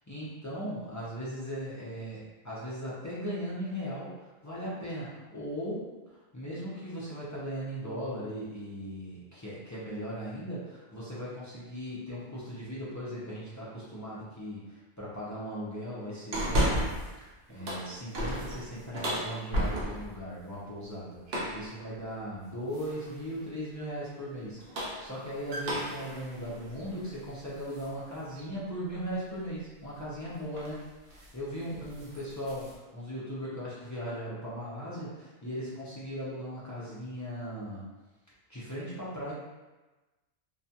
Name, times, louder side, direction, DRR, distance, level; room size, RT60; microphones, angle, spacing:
voice 1, 0.1-16.8 17.2-30.8 31.1-37.9 38.5-39.3, equal, 30° left, -9 dB, 0.3 m, -38 dB
sound 1, 16.3-17.2 17.5-20.2 21.3-21.7 22.7-23.2 24.4-27.9 28.4-28.5 30.0-30.2 30.5-30.8 31.1-31.4 31.7-32.7, equal, 65° right, 0.8 m, -33 dB
2.3 x 2.3 x 2.7 m, 1.1 s
omnidirectional pair, 1.2 m